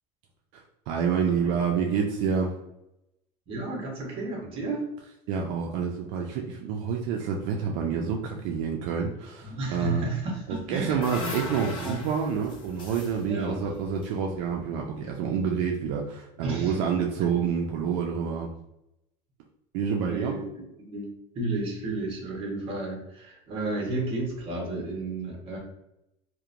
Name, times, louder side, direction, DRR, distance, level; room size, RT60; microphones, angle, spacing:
voice 1, 0.5-2.6 5.3-10.0 10.5-18.5 19.7-20.4, right 6 dB, 75° right, 0 dB, 0.4 m, -28 dB
voice 2, 3.5-4.9 9.4-12.1 13.3-13.8 16.4-16.8 20.1-21.1 21.3-25.6, right 2 dB, 35° right, -1 dB, 0.9 m, -32 dB
sound 1, 10.5-14.8, left 2 dB, 30° left, 0.5 m, -40 dB
2.8 x 2.1 x 2.5 m, 0.85 s
cardioid pair, 155°, 16 cm